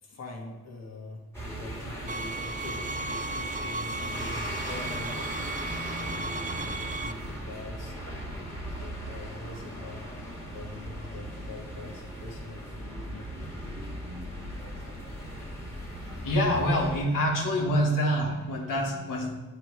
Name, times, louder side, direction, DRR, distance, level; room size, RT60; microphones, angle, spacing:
voice 1, 0.0-7.9 8.8-10.0 10.5-13.3, left 2 dB, 55° left, 0 dB, 1.6 m, -43 dB
sound 1, 1.3-17.0, equal, 10° left, 2.0 m, -38 dB
sound 2, 2.1-7.1, right 3 dB, 25° right, 0.3 m, -35 dB
voice 2, 16.0-19.4, equal, 80° left, 0 dB, 1.3 m, -26 dB
8.8 x 3.1 x 4.6 m, 1.2 s
cardioid pair, 70°, 32 cm